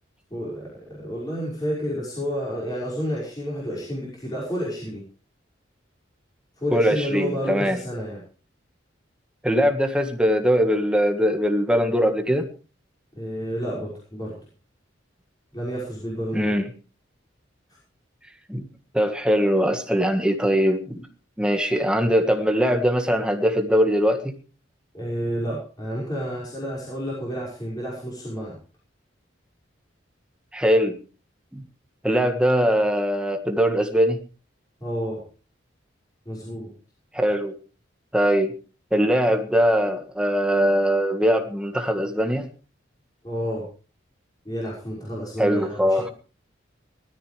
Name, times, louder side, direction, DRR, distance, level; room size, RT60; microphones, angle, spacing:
voice 1, 0.3-5.0 6.6-8.2 13.1-14.4 15.5-16.6 24.9-28.6 34.8-35.2 36.3-36.7 43.2-43.7 44.4-46.1, equal, 20° left, -5 dB, 5.8 m, -30 dB
voice 2, 6.7-7.8 9.4-12.4 16.3-16.7 18.5-18.6 18.9-21.1 21.4-24.3 30.5-31.0 31.5-31.6 32.0-34.2 37.1-37.5 38.1-38.5 38.9-42.5 45.4-46.1, equal, 5° right, 5 dB, 1.6 m, -21 dB
20.5 x 13.5 x 3.4 m, 0.37 s
head